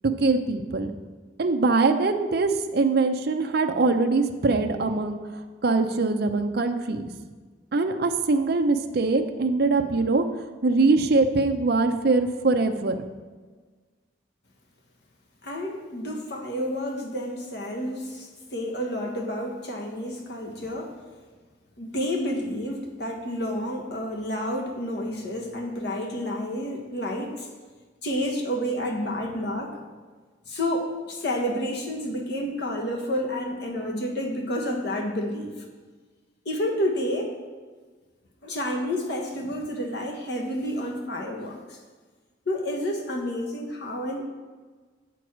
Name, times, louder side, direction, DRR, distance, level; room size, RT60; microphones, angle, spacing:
voice 1, 0.0-0.9 1.4-7.1 7.7-13.0, right 3 dB, 50° right, 6 dB, 0.5 m, -23 dB
voice 2, 15.4-21.0 21.8-27.5 28.0-29.8 30.5-35.5 36.4-37.4 38.4-41.8 42.5-44.2, equal, 55° left, 1 dB, 1.2 m, -30 dB
7.9 x 4.7 x 6.0 m, 1.4 s
head